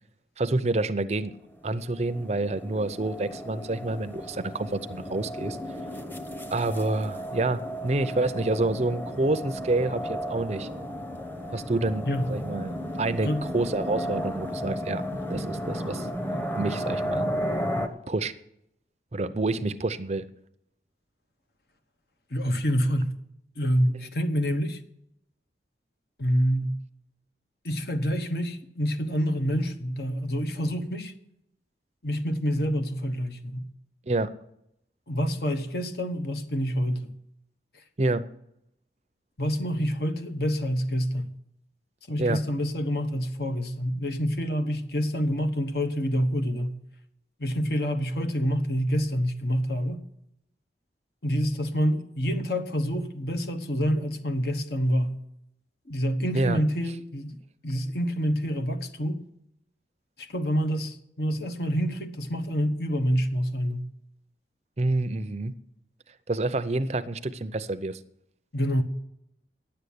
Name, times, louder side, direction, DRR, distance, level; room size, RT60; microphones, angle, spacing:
voice 1, 0.4-1.3 1.6-5.6 6.5-10.7 11.5-15.0 15.3-16.1 16.6-17.3 18.1-18.3 19.1-20.3 34.1-34.3 38.0-38.3 42.2-42.4 56.3-56.6 64.8-65.6 66.3-68.0, right 2 dB, 35° right, 0.6 m, -28 dB
sound 1, 1.7-17.9, equal, 10° left, 0.9 m, -34 dB
voice 2, 22.3-23.1 23.6-24.8 26.2-26.8 27.6-31.1 32.0-33.7 35.1-37.1 39.4-41.3 42.1-46.8 47.4-50.0 51.2-55.2 55.9-57.4 57.6-59.2 60.2-63.9 68.5-68.8, equal, 60° left, 1.1 m, -27 dB
10.5 x 7.9 x 8.5 m
head